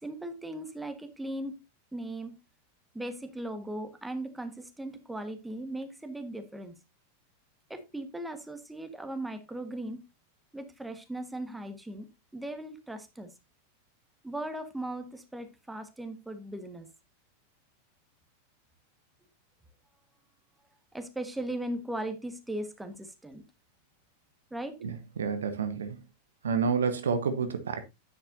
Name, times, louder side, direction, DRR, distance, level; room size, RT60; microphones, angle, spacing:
voice 1, 0.0-1.6 1.9-2.3 2.9-6.7 7.7-10.0 10.5-13.3 14.2-16.9 20.9-23.4 24.5-24.8, right 1 dB, 5° right, 1.4 m, -38 dB
voice 2, 24.8-26.0 26.4-27.8, right 5 dB, 65° right, 1.0 m, -29 dB
9.8 x 8.3 x 2.7 m
figure-of-eight pair, 90°, 0 cm